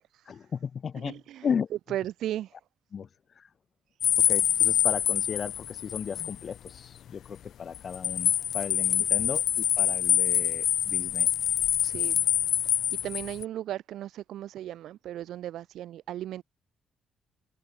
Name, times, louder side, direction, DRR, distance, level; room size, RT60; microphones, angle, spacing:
voice 1, 0.3-1.7 2.9-3.1 3.3-3.5 4.2-11.3, left 7 dB, 50° left, 1.4 m, -35 dB
voice 2, 1.0-1.5 1.9-2.5 11.8-12.2 13.0-16.4, right 12 dB, 80° right, 0.8 m, -36 dB
sound 1, 4.0-6.4 6.7-6.8 7.7-13.4, left 10 dB, 70° left, 0.3 m, -25 dB
cardioid pair, 90°, 0 cm